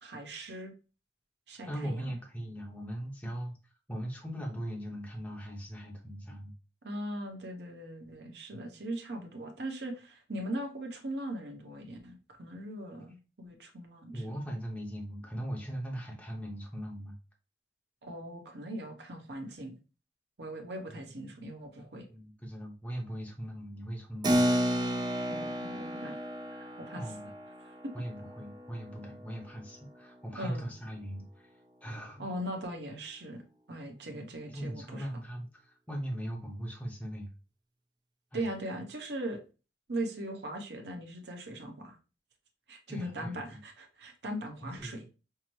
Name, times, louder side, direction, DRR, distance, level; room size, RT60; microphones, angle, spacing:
voice 1, 0.0-0.7 1.5-2.0 6.8-14.3 18.0-19.7 20.4-22.1 25.3-26.2 26.9-27.1 27.6-27.9 30.4-30.7 32.2-33.4 33.7-35.1 38.3-39.4 39.9-42.0 42.7-45.0, right 1 dB, 65° right, 3 dB, 0.9 m, -39 dB
voice 2, 1.7-3.5 3.9-6.5 8.5-8.6 14.1-17.1 22.1-24.4 26.9-27.3 27.9-31.5 31.8-32.2 34.5-37.3 38.3-38.4 42.9-43.6 44.6-45.0, equal, 10° left, 0 dB, 0.7 m, -39 dB
Keyboard (musical), 24.2-30.3, equal, 25° right, 0.4 m, -33 dB
5.7 x 2.0 x 3.1 m, 0.32 s
head